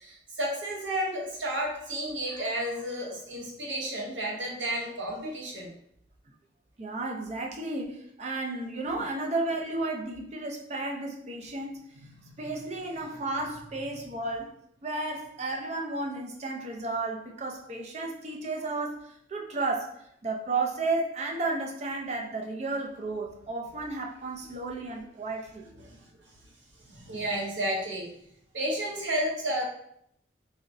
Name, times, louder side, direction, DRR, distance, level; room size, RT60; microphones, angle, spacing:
voice 1, 0.0-5.7 12.2-12.3 25.8-26.1 26.9-28.1 28.5-29.6, right 1 dB, 90° right, -1 dB, 0.8 m, -32 dB
voice 2, 6.8-11.8 12.4-14.5 14.8-20.0 20.2-25.7, right 2 dB, 40° right, 1 dB, 0.4 m, -33 dB
3.7 x 2.1 x 2.5 m, 0.72 s
head